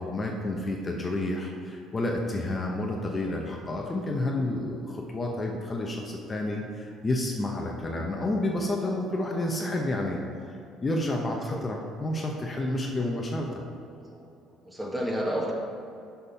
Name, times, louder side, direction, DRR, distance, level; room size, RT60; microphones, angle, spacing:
voice 1, 0.0-10.2 10.5-13.6, left 1 dB, 30° left, 0 dB, 0.9 m, -30 dB
voice 2, 1.0-1.4 9.3-9.5 11.3-11.7 13.9-14.3 14.6-15.5, equal, 10° right, -1 dB, 1.6 m, -33 dB
6.7 x 5.5 x 5.6 m, 2.5 s
supercardioid pair, 85°, 0 cm